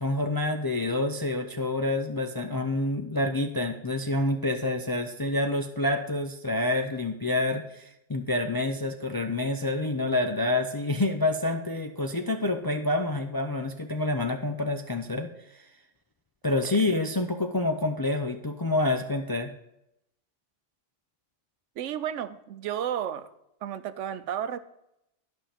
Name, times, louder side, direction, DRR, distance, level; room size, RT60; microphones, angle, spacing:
voice 1, 0.0-15.3 16.4-19.5, left 2 dB, 35° left, 5 dB, 0.3 m, -27 dB
voice 2, 21.8-23.3 23.6-24.6, right 9 dB, 85° right, 12 dB, 1.0 m, -32 dB
11.5 x 5.6 x 5.0 m, 0.83 s
omnidirectional pair, 1.2 m